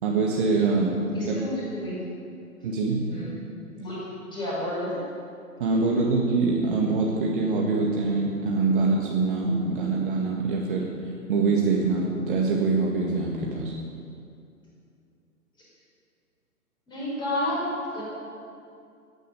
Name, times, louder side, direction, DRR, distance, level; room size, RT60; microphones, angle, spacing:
voice 1, 0.0-1.0 1.3-1.4 2.6-3.1 5.6-13.7, right 3 dB, 35° right, -1 dB, 1.8 m, -24 dB
voice 2, 1.1-2.1 3.1-3.3 3.7-5.0 16.9-18.0, left 1 dB, 10° left, -6 dB, 5.2 m, -31 dB
15.5 x 10.0 x 9.1 m, 2.5 s
figure-of-eight pair, 130°, 46 cm